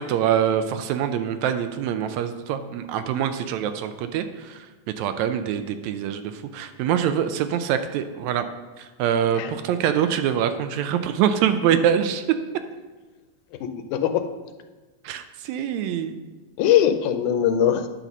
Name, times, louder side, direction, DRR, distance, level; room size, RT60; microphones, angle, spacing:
voice 1, 0.0-4.7 5.0-8.5 8.8-12.3 15.0-16.2, right 9 dB, 80° right, 9 dB, 1.8 m, -24 dB
voice 2, 13.5-14.2 16.6-17.9, left 10 dB, 90° left, 8 dB, 2.1 m, -21 dB
10.0 x 4.0 x 6.0 m, 1.2 s
omnidirectional pair, 3.4 m